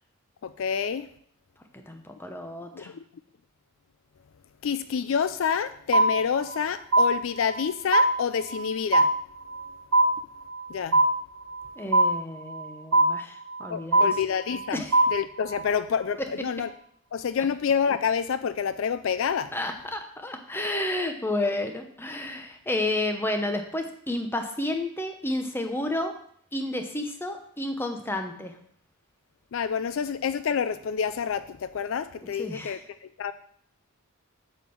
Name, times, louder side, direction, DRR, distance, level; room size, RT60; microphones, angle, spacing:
voice 1, 0.4-1.1 2.7-3.0 4.6-9.1 10.7-11.0 13.7-14.8 15.1-16.7 17.1-19.5 29.5-32.8 33.2-33.3, left 7 dB, 65° left, 13 dB, 0.4 m, -28 dB
voice 2, 1.7-2.9 11.8-14.1 14.7-15.0 19.5-26.1 26.5-28.5 32.4-32.8, left 1 dB, 10° left, 5 dB, 0.9 m, -31 dB
sound 1, 5.9-6.6 6.9-7.7 7.9-8.7 8.9-9.7 9.9-10.7 10.9-11.7 11.9-12.7 12.9-13.7 13.9-14.7 14.9-15.7, right 2 dB, 80° right, 1.4 m, -21 dB
8.0 x 4.4 x 7.0 m, 0.62 s
head